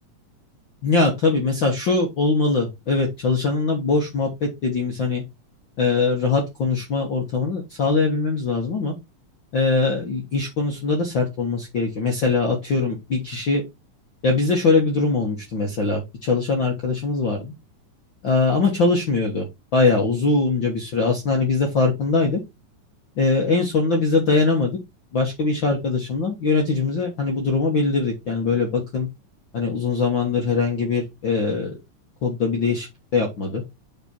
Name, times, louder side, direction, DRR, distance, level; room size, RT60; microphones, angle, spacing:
voice 1, 0.8-5.2 5.8-8.9 9.5-13.6 14.2-17.5 18.2-19.4 19.7-22.4 23.2-24.8 25.1-29.1 29.5-31.8 32.2-32.9 33.1-33.6, left 4 dB, 45° left, 1 dB, 1.8 m, -22 dB
8.6 x 4.9 x 4.4 m, 0.22 s
omnidirectional pair, 3.7 m